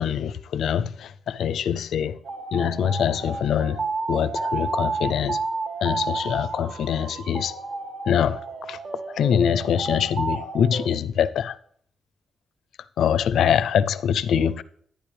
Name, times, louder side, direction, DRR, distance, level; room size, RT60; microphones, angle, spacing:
voice 1, 0.0-2.2 2.5-3.8 4.1-5.4 5.8-7.5 8.1-8.8 9.1-11.6 13.0-14.6, left 8 dB, 80° left, 0.5 m, -24 dB
sound 1, 2.2-10.9, right 3 dB, 65° right, 1.5 m, -31 dB
12.0 x 10.0 x 3.3 m
cardioid pair, 110°, 0 cm